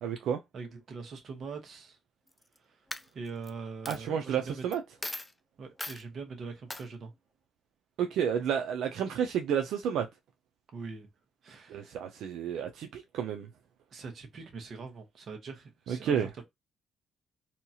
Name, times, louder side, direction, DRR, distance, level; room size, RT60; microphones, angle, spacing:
voice 1, 0.0-0.4 3.9-4.8 8.0-10.1 11.7-13.5 15.9-16.3, right 8 dB, 80° right, 0.4 m, -31 dB
voice 2, 0.5-2.0 2.6-2.9 3.1-4.6 5.6-7.1 10.7-11.1 11.4-12.1 13.9-16.4, right 4 dB, 55° right, 1.0 m, -43 dB
Coin (dropping), 2.3-2.6 2.9-3.5 3.9-4.0 4.7-4.8 5.0-5.3 5.8-6.0 6.7-6.8, left 1 dB, 10° left, 0.4 m, -38 dB
2.8 x 2.3 x 2.7 m
cardioid pair, 90°, 0 cm